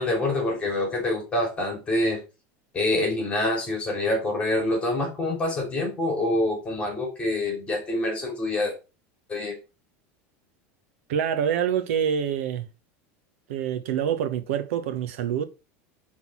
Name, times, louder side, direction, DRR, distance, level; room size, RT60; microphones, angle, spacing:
voice 1, 0.0-2.2 2.7-8.7 9.3-9.6, left 2 dB, 15° left, 3.2 m, -26 dB
voice 2, 11.1-12.7 13.5-15.4, right 8 dB, 85° right, 1.2 m, -26 dB
6.1 x 3.9 x 6.2 m
supercardioid pair, 155°, 7 cm